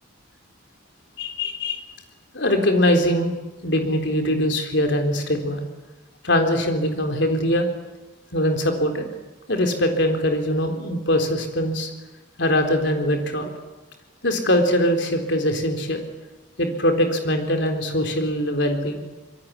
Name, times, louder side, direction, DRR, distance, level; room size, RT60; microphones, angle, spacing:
voice 1, 1.2-1.8 2.3-3.4 3.6-5.6 6.2-7.7 8.3-9.1 9.5-11.9 12.4-13.5 14.2-16.0 16.6-19.1, left 1 dB, 60° left, 5 dB, 4.0 m, -22 dB
25.5 x 22.0 x 9.8 m, 1.1 s
head